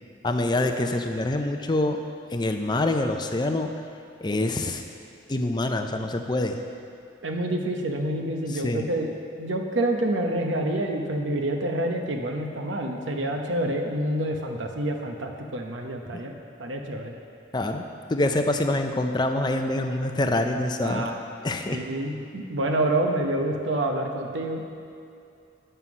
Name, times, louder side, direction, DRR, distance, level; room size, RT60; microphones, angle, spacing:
voice 1, 0.2-2.0 2.3-3.7 4.2-4.8 5.3-6.6 8.5-8.9 17.5-17.8 18.1-21.1 21.4-21.8, left 2 dB, 20° left, 5 dB, 0.5 m, -25 dB
voice 2, 7.2-16.3 16.6-17.1 20.8-21.1 21.7-24.6, right 1 dB, 75° right, 3 dB, 0.9 m, -27 dB
9.5 x 5.6 x 6.0 m, 2.5 s
head